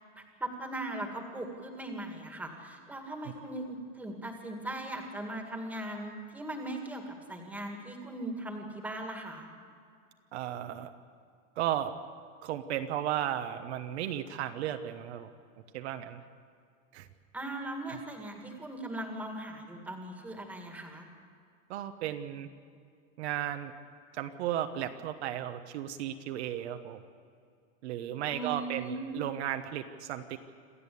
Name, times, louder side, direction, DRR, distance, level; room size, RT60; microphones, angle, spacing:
voice 1, 0.2-9.5 17.3-21.1 28.3-29.1, right 1 dB, 5° right, 3 dB, 1.9 m, -39 dB
voice 2, 10.3-10.9 11.6-11.9 12.4-15.3 15.7-16.2 16.9-17.1 17.9-18.0 21.7-22.5 23.2-23.7 24.1-27.0 27.8-30.4, right 11 dB, 55° right, 7 dB, 1.2 m, -34 dB
27.0 x 14.5 x 8.5 m, 2.3 s
supercardioid pair, 175°, 39 cm